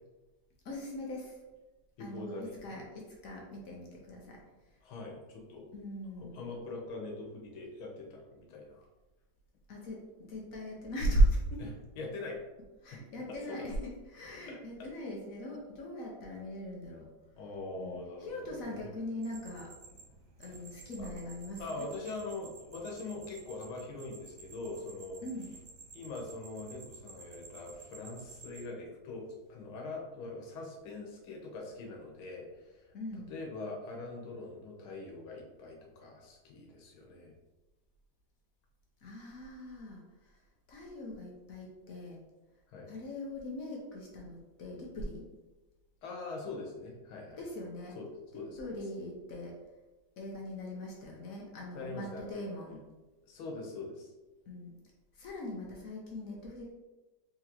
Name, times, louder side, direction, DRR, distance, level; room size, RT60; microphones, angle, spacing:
voice 1, 0.6-1.4 2.0-4.4 4.7-4.8 5.7-6.4 9.7-11.6 12.8-17.1 17.8-19.8 20.4-21.9 25.2-25.5 32.9-33.3 39.0-40.4 40.7-42.2 42.9-45.3 47.4-48.0 48.3-49.6 50.2-52.8 54.5-54.7 55.1-56.7, equal, 55° left, -2 dB, 1.0 m, -38 dB
voice 2, 2.0-2.8 4.8-5.7 6.2-8.9 11.6-11.7 12.0-12.4 13.3-13.7 14.5-14.6 17.4-18.9 21.0-21.1 21.6-25.2 25.9-32.9 33.3-37.3 42.7-42.9 46.0-47.4 48.0-48.1 48.3-48.7 51.8-52.2 53.2-54.1, left 3 dB, 90° left, 0 dB, 1.8 m, -43 dB
sound 1, 19.2-28.6, right 4 dB, 70° right, 1.2 m, -53 dB
4.1 x 3.7 x 3.0 m, 1.1 s
omnidirectional pair, 2.2 m